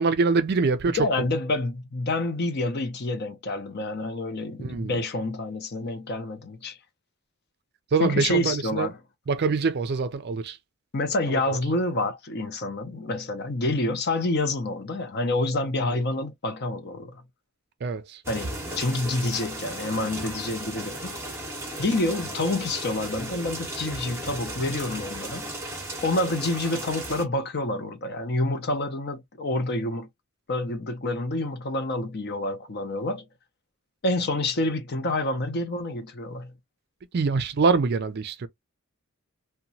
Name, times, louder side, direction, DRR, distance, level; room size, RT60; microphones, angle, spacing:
voice 1, 0.0-1.0 4.6-4.9 7.9-8.9 9.3-10.6 11.3-11.4 15.9-16.0 17.8-18.2 37.1-38.5, right 4 dB, 50° right, 0.4 m, -24 dB
voice 2, 0.9-6.8 8.0-9.0 10.9-17.2 18.3-21.2 21.8-25.5 26.0-30.1 30.5-33.2 34.0-36.5, left 2 dB, 50° left, 0.7 m, -28 dB
sound 1, 18.2-27.2, right 1 dB, 10° right, 0.7 m, -35 dB
2.9 x 2.2 x 2.6 m
head